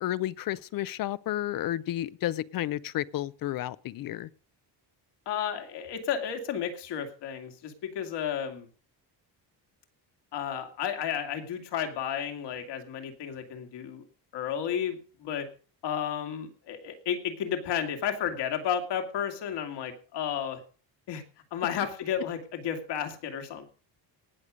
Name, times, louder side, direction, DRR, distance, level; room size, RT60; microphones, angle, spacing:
voice 1, 0.0-4.3, left 13 dB, 55° left, 0.5 m, -32 dB
voice 2, 5.3-8.7 10.3-14.0 14.3-15.5 15.8-20.6 21.1-21.2 21.5-23.7, left 8 dB, 70° left, 2.6 m, -32 dB
18.5 x 6.7 x 5.0 m
cardioid pair, 165°, 43 cm